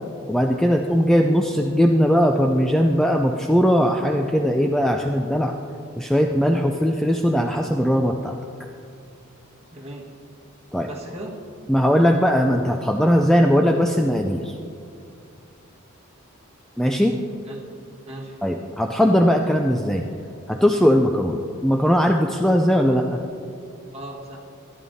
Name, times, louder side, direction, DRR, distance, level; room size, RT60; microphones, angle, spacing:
voice 1, 0.3-5.5 6.0-8.4 10.7-10.9 11.7-14.5 16.8-17.2 18.4-20.0 20.5-23.2, equal, ahead, 3 dB, 0.3 m, -19 dB
voice 2, 9.7-10.1 10.9-11.4 17.4-17.7 18.0-18.4 23.9-24.4, right 1 dB, 30° right, -2 dB, 1.6 m, -37 dB
14.0 x 10.5 x 2.7 m, 2.5 s
head